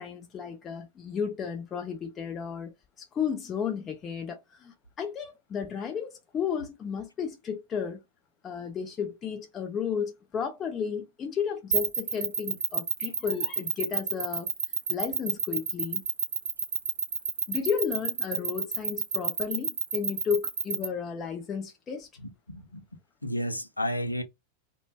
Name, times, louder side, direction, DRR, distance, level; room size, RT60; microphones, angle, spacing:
voice 1, 0.0-8.0 8.4-14.5 14.9-16.0 17.5-22.1, left 7 dB, 25° left, 0.6 m, -33 dB
sound 1, 11.7-20.9, right 6 dB, 70° right, 0.6 m, -28 dB
voice 2, 22.2-22.8 23.2-24.2, equal, 85° left, 0.5 m, -32 dB
2.2 x 2.0 x 3.3 m
figure-of-eight pair, 90°, 0 cm